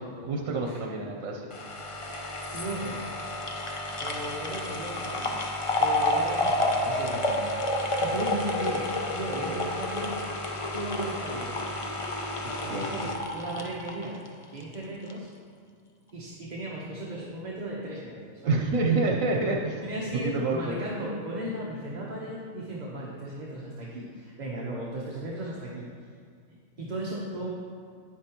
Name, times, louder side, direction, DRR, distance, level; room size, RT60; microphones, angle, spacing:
voice 1, 0.2-1.5 12.4-13.0 18.4-19.8 20.3-20.7, right 3 dB, 80° right, 0 dB, 1.1 m, -27 dB
sound 1, 1.5-14.7 15.1-15.2, left 1 dB, 40° left, 0.4 m, -30 dB
voice 2, 2.5-3.0 4.0-5.3 5.8-10.1 10.7-11.6 12.6-13.1 13.3-14.2 14.5-15.3 16.1-18.6 19.8-25.9 26.8-27.5, right 1 dB, 40° right, -4 dB, 0.9 m, -36 dB
9.6 x 8.3 x 3.0 m, 2.1 s
omnidirectional pair, 1.4 m